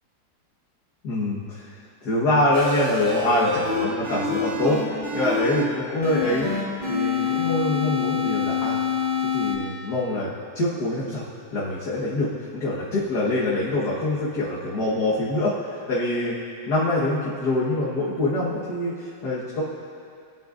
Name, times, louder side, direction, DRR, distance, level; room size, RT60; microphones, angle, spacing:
voice 1, 1.0-8.8 9.2-10.3 10.6-11.3 11.5-16.4 16.7-19.6, left 1 dB, 60° left, -7 dB, 1.9 m, -25 dB
sound 1, 2.5-5.6 6.0-9.5, left 5 dB, 20° right, 2.7 m, -26 dB
23.5 x 8.9 x 2.5 m, 2.4 s
omnidirectional pair, 2.0 m